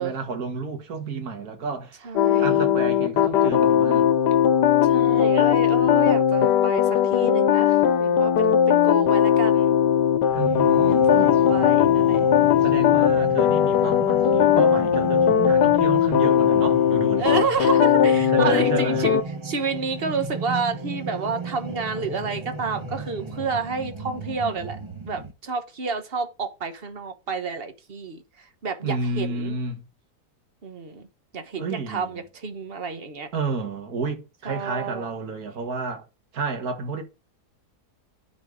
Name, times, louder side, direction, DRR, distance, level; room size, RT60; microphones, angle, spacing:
voice 1, 0.0-2.1 2.3-4.1 10.3-11.4 12.6-17.5 18.3-19.1 28.8-29.8 31.6-32.1 33.3-36.0 36.3-37.0, right 4 dB, 60° right, 2.0 m, -31 dB
voice 2, 2.0-2.6 4.8-9.8 10.9-12.3 17.2-19.2 19.4-24.8 25.1-29.6 30.6-31.1 31.3-33.3 34.4-35.0, right 4 dB, 40° right, 1.2 m, -30 dB
sound 1, 2.2-19.2, left 9 dB, 80° left, 1.5 m, -19 dB
sound 2, 10.3-25.3, right 3 dB, 20° right, 0.8 m, -36 dB
10.5 x 4.3 x 4.9 m
omnidirectional pair, 1.8 m